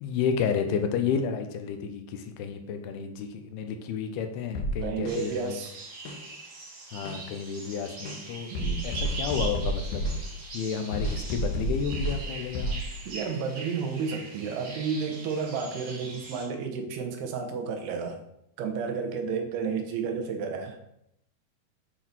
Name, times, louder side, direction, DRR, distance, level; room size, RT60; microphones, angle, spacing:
voice 1, 0.0-5.6 6.9-8.5 8.8-10.0 10.5-12.8, left 7 dB, 90° left, 6 dB, 2.7 m, -31 dB
sound 1, 4.6-5.2 6.1-6.2 7.1-7.2 8.1-8.2 8.6-10.2 10.9-12.2 12.6-12.8, right 1 dB, 70° left, 1.9 m, -30 dB
voice 2, 4.8-5.8 8.5-8.9 13.1-18.2 18.6-21.0, right 5 dB, 90° right, 4 dB, 3.0 m, -32 dB
sound 2, 5.1-16.4, right 3 dB, 55° right, 1.9 m, -42 dB
8.1 x 4.0 x 4.4 m, 0.78 s
omnidirectional pair, 4.5 m